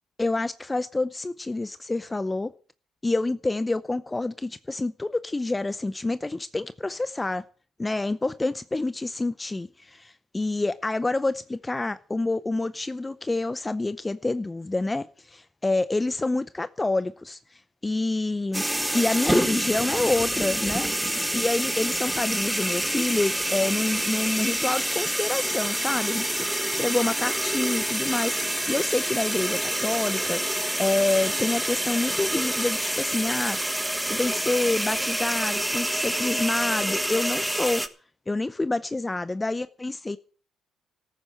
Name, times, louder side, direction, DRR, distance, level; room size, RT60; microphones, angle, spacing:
voice 1, 0.2-2.5 3.0-7.4 7.8-18.7 18.9-20.9 21.3-30.4 30.8-33.6 34.0-37.8 38.3-40.2, left 2 dB, 15° left, 0.6 m, -27 dB
sound 1, 18.5-37.9, right 1 dB, 5° right, 1.4 m, -27 dB
14.0 x 9.0 x 7.7 m
cardioid pair, 85°, 0 cm